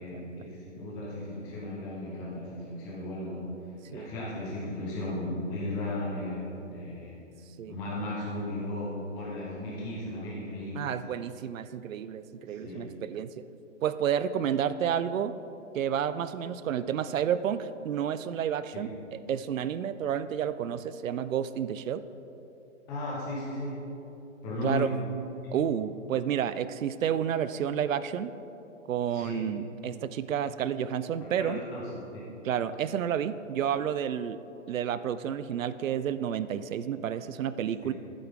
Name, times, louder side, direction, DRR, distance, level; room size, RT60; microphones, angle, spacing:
voice 1, 0.0-3.5 3.9-7.2 7.7-10.9 12.5-13.0 18.7-18.9 22.9-23.9 24.4-24.9 29.1-29.5 31.4-32.4 37.8-37.9, left 1 dB, 10° left, -6 dB, 1.0 m, -35 dB
voice 2, 10.7-13.5 13.8-15.3 15.7-22.0 24.6-24.9 25.5-28.3 28.9-31.6 32.4-34.4 34.7-37.9, right 9 dB, 85° right, 14 dB, 0.6 m, -30 dB
12.0 x 9.1 x 3.7 m, 3.0 s
hypercardioid pair, 175°, 38 cm